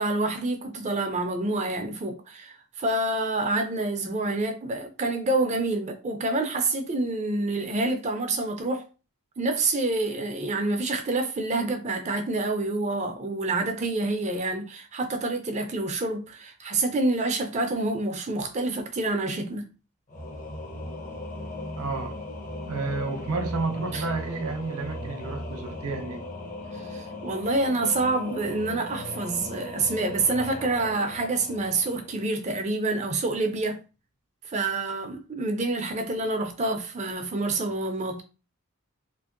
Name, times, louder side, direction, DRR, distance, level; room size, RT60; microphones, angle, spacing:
voice 1, 0.0-8.8 9.4-19.6 23.9-24.0 26.7-33.8 34.5-38.2, right 2 dB, 30° right, 0.4 m, -27 dB
Singing / Musical instrument, 20.1-32.7, left 1 dB, 35° left, 0.6 m, -38 dB
voice 2, 21.8-22.2 22.7-26.3, right 3 dB, 85° right, 0.6 m, -31 dB
2.8 x 2.6 x 2.5 m
head